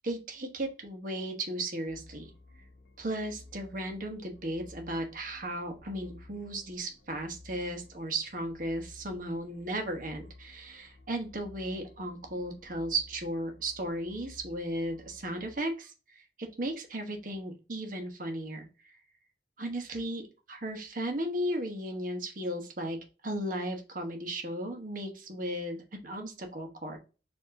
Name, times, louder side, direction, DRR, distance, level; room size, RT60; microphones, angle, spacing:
voice 1, 0.0-2.3 3.0-18.9 19.6-23.0 23.2-27.0, right 1 dB, 50° right, 4 dB, 1.1 m, -35 dB
sound 1, 1.9-15.6, left 2 dB, 65° left, 0.9 m, -54 dB
4.7 x 2.9 x 3.6 m, 0.33 s
head